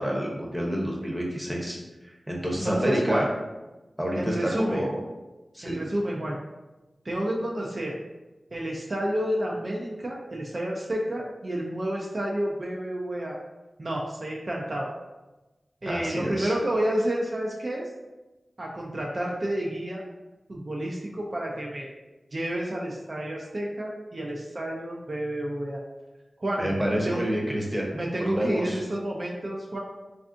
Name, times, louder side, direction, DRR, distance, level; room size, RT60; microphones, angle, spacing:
voice 1, 0.0-1.8 2.3-3.3 4.0-4.9 5.5-5.8 15.9-16.5 26.6-27.9 28.2-28.8, equal, 10° right, -2 dB, 0.7 m, -28 dB
voice 2, 2.6-3.3 4.2-4.8 5.6-6.4 7.0-7.9 8.5-13.4 13.8-14.9 15.8-17.9 18.6-20.0 20.5-21.9 22.3-25.8 26.4-26.7 27.1-27.2 27.9-29.8, right 1 dB, 50° right, -2 dB, 0.4 m, -30 dB
3.3 x 2.4 x 2.5 m, 1.1 s
wide cardioid pair, 55°, 0 cm